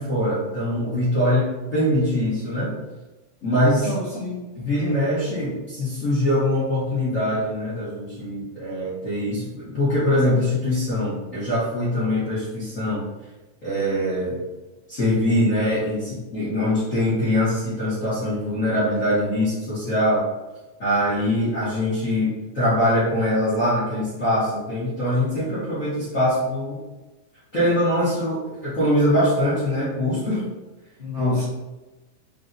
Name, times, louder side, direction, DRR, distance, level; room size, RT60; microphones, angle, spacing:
voice 1, 0.0-2.7 3.4-3.9 4.6-13.1 13.6-14.4 14.9-20.2 20.8-26.8 27.5-30.4 31.2-31.4, left 1 dB, 80° left, -12 dB, 0.7 m, -23 dB
voice 2, 3.8-4.4 4.8-5.1 31.0-31.5, left 1 dB, 40° left, -10 dB, 0.5 m, -30 dB
5.4 x 2.7 x 2.6 m, 1.1 s
omnidirectional pair, 3.5 m